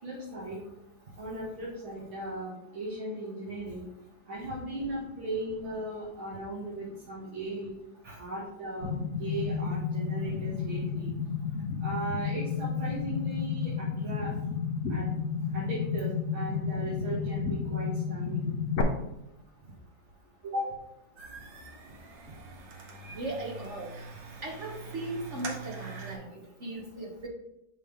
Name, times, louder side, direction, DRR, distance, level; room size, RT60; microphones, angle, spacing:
voice 1, 0.0-0.6 1.2-3.9 4.3-7.7 8.1-11.1 11.8-14.3 14.9-15.1 15.5-18.5 20.4-20.7, right 1 dB, 85° right, -10 dB, 2.8 m, -37 dB
sound 1, 8.8-18.8, left 6 dB, 55° left, 0.9 m, -32 dB
sound 2, 21.2-26.2, right 4 dB, 70° right, 1.7 m, -44 dB
voice 2, 23.1-23.9 24.4-27.3, right 1 dB, 45° right, 0 dB, 1.1 m, -38 dB
6.4 x 5.2 x 3.5 m, 0.85 s
omnidirectional pair, 2.1 m